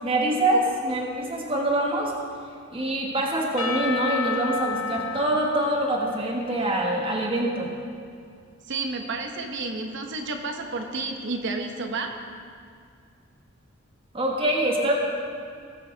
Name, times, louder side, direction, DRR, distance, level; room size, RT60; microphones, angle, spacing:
voice 1, 0.0-2.1 2.7-7.7 14.1-14.9, right 1 dB, 25° right, -2 dB, 1.3 m, -25 dB
Percussion / Church bell, 3.6-7.5, left 5 dB, 70° left, 1.1 m, -32 dB
voice 2, 8.7-12.1, right 3 dB, 60° right, 3 dB, 1.0 m, -31 dB
19.0 x 7.1 x 4.0 m, 2.3 s
head